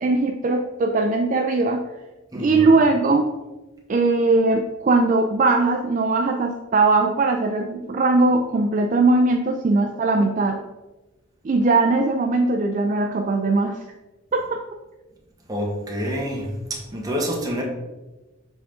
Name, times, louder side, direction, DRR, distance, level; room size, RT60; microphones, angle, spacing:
voice 1, 0.0-1.9 2.3-3.3 3.9-10.6 11.4-13.8 14.3-14.6, right 3 dB, 40° right, 4 dB, 0.3 m, -20 dB
voice 2, 2.3-2.7 15.5-17.6, equal, 15° right, -1 dB, 1.0 m, -27 dB
7.0 x 3.6 x 3.6 m, 1.1 s
head